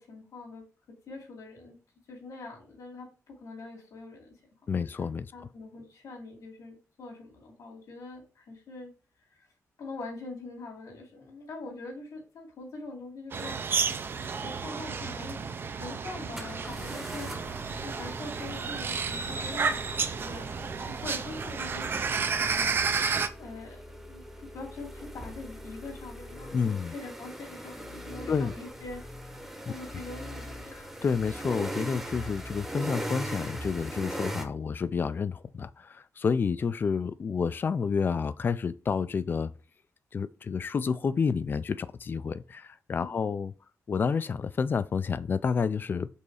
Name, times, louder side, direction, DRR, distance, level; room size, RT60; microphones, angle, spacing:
voice 1, 0.0-1.8 2.1-4.3 5.3-8.9 9.3-9.5 9.8-13.6 14.4-17.6 17.8-22.8 23.4-23.8 24.1-26.6 26.9-29.0 29.7-30.7 42.9-43.3, left 3 dB, 80° left, 2.6 m, -43 dB
voice 2, 4.7-5.3 26.5-26.9 28.3-28.5 30.7-39.5 40.1-43.5 43.9-46.1, left 5 dB, 35° left, 0.4 m, -29 dB
sound 1, 13.3-23.3, right 5 dB, 40° right, 0.5 m, -31 dB
sound 2, 16.4-34.5, equal, 5° right, 0.8 m, -40 dB
5.4 x 4.0 x 4.8 m
wide cardioid pair, 165°, 6 cm